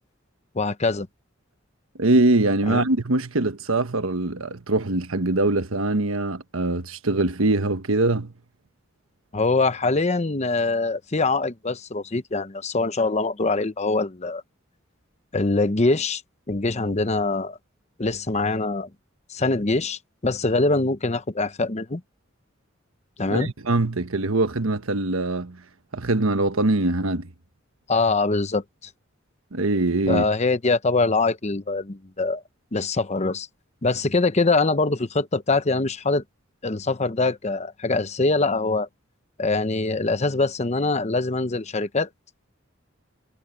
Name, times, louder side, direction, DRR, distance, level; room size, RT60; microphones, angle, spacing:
voice 1, 0.5-1.1 2.7-2.9 9.3-14.4 15.3-16.2 16.5-17.6 18.0-18.9 19.3-22.0 23.2-23.5 27.9-28.9 30.1-32.4 32.7-33.5 33.8-36.2 36.6-38.9 39.4-42.1, left 3 dB, 35° left, 0.9 m, -23 dB
voice 2, 2.0-8.3 23.3-25.6 25.9-27.3 29.5-30.2, right 2 dB, 85° right, 1.3 m, -23 dB
head